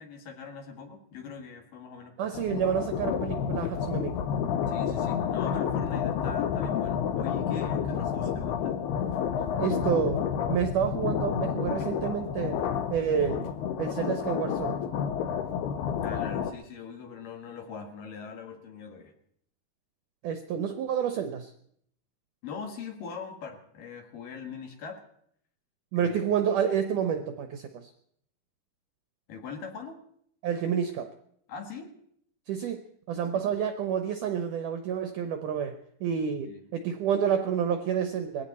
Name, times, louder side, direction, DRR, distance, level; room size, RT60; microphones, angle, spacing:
voice 1, 0.0-2.4 4.7-9.1 11.8-11.9 16.0-19.1 22.4-25.0 25.9-26.2 29.3-30.0 31.5-31.9 33.3-33.6 36.4-36.6, left 5 dB, 60° left, 3 dB, 3.4 m, -42 dB
voice 2, 2.2-4.2 8.3-8.4 9.6-12.6 12.9-13.5 13.8-14.8 20.2-21.5 25.9-27.9 30.4-31.1 32.5-32.8 33.1-38.4, right 8 dB, 75° right, 8 dB, 1.9 m, -29 dB
sound 1, 2.3-16.5, left 8 dB, 80° left, 2.9 m, -30 dB
20.5 x 16.0 x 4.2 m, 0.70 s
omnidirectional pair, 4.7 m